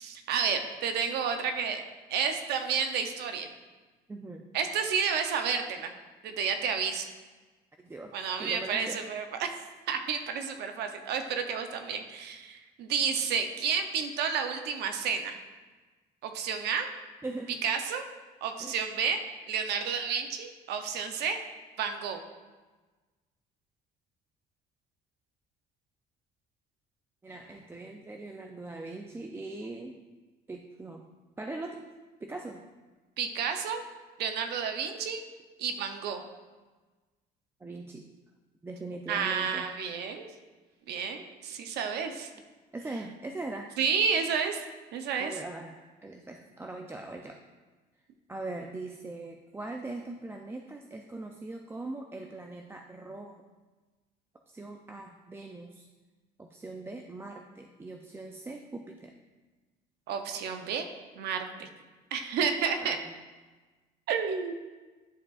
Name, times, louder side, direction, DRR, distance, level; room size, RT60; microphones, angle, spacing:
voice 1, 0.0-1.8 2.1-3.5 4.5-5.9 6.2-7.1 8.1-9.5 9.9-15.4 16.2-16.9 17.6-18.0 18.4-19.2 19.5-21.4 21.8-22.2 33.2-33.8 34.2-35.2 35.6-36.2 39.1-40.3 40.9-42.3 43.8-44.6 44.9-45.3 60.1-60.9 61.2-61.7 62.1-63.0 64.1-64.5, right 6 dB, 75° right, 6 dB, 0.7 m, -31 dB
voice 2, 4.1-4.4 7.8-9.0 17.2-17.6 18.6-18.7 27.2-30.0 30.5-31.0 31.4-31.9 32.2-32.6 37.6-38.1 38.6-39.7 42.7-43.7 45.2-47.4 48.3-53.5 54.5-55.9 56.4-59.2 62.8-63.2, right 2 dB, 15° right, 3 dB, 0.4 m, -41 dB
10.5 x 4.6 x 2.4 m, 1.3 s
cardioid pair, 110°, 17 cm